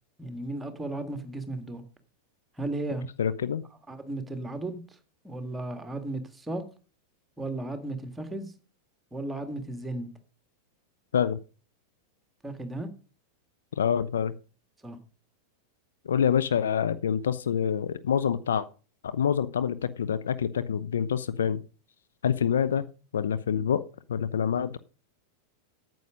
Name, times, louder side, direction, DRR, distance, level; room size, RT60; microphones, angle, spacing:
voice 1, 0.2-1.8 2.6-3.1 3.9-5.0 5.2-6.6 7.4-8.5 9.1-10.1 12.4-12.9 14.8-15.0, right 2 dB, 10° right, 8 dB, 1.8 m, -35 dB
voice 2, 3.2-3.6 11.1-11.4 13.7-14.3 16.0-18.7 19.0-21.6 22.2-22.9 23.1-23.8 24.1-24.8, left 8 dB, 65° left, 14 dB, 0.7 m, -26 dB
9.3 x 7.9 x 6.3 m, 0.36 s
figure-of-eight pair, 90°, 0 cm